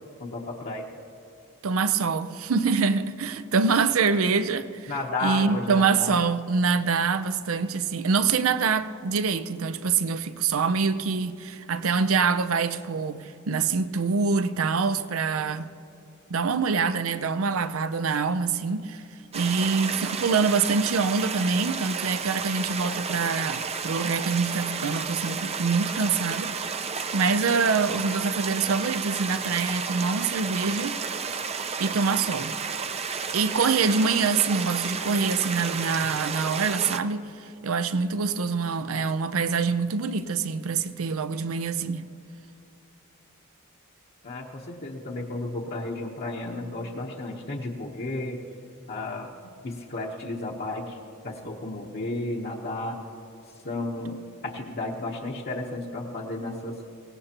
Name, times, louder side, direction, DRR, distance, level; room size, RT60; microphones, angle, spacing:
voice 1, 0.2-0.9 4.9-6.2 44.2-48.4 48.9-49.3 49.6-51.0 51.2-53.0 53.6-56.8, left 2 dB, 50° left, 1.0 m, -33 dB
voice 2, 1.6-4.9 5.2-15.7 16.3-19.0 19.3-26.6 27.1-31.0 31.8-32.6 33.3-42.1, right 5 dB, 70° right, 0.6 m, -25 dB
sound 1, 19.3-37.0, right 5 dB, 30° right, 0.6 m, -32 dB
23.0 x 18.0 x 2.9 m
head